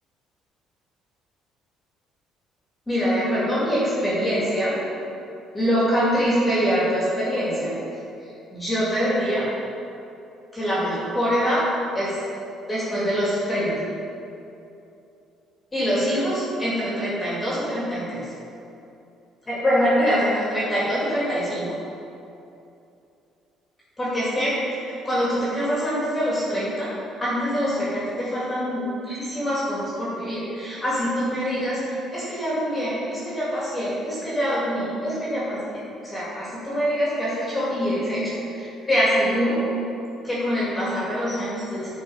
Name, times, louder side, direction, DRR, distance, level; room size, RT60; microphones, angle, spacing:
voice 1, 2.9-4.8 5.5-8.0 8.5-9.5 10.5-11.7 11.9-12.2 12.7-13.7 15.7-18.3 19.5-21.8 24.0-26.9 27.2-35.6 36.0-39.6 40.2-41.9, equal, 15° left, -8 dB, 2.2 m, -24 dB
10.5 x 4.4 x 5.5 m, 2.7 s
cardioid pair, 150°, 0 cm